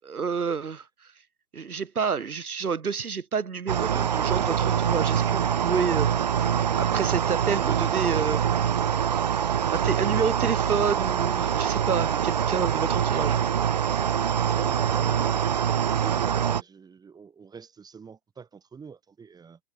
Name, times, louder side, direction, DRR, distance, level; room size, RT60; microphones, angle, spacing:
voice 1, 0.0-0.9 1.5-6.1 6.8-8.4 9.7-13.4, right 6 dB, 65° right, 4.6 m, -29 dB
sound 1, 3.7-16.6, right 8 dB, 25° right, 0.6 m, -24 dB
voice 2, 14.5-19.6, right 6 dB, 10° right, 7.6 m, -44 dB
figure-of-eight pair, 140°, 47 cm